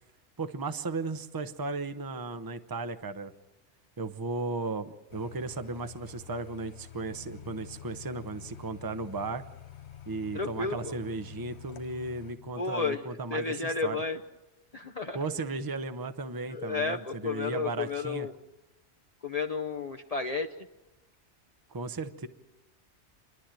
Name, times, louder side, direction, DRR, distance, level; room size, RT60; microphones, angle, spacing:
voice 1, 0.4-3.3 4.0-9.4 10.1-14.0 15.1-18.3 21.7-22.3, right 3 dB, 20° right, 10 dB, 0.8 m, -35 dB
sound 1, 5.1-12.4, left 12 dB, 70° left, 1.2 m, -50 dB
sound 2, 7.0-12.5, left 8 dB, 90° left, 1.3 m, -51 dB
voice 2, 10.3-10.9 12.6-14.2 14.7-15.2 16.5-18.4 19.2-20.5, left 4 dB, 40° left, 3 dB, 0.8 m, -32 dB
29.0 x 11.5 x 9.0 m, 1.1 s
omnidirectional pair, 1.2 m